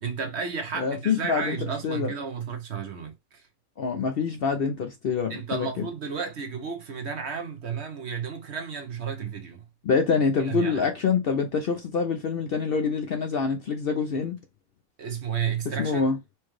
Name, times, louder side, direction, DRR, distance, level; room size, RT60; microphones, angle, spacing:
voice 1, 0.0-3.5 5.3-9.6 10.4-10.8 15.0-16.1, right 6 dB, 55° right, 1.0 m, -32 dB
voice 2, 0.8-1.6 1.8-2.1 3.8-5.7 9.8-14.4 15.8-16.2, left 5 dB, 60° left, 0.6 m, -25 dB
4.5 x 2.3 x 3.1 m
omnidirectional pair, 1.4 m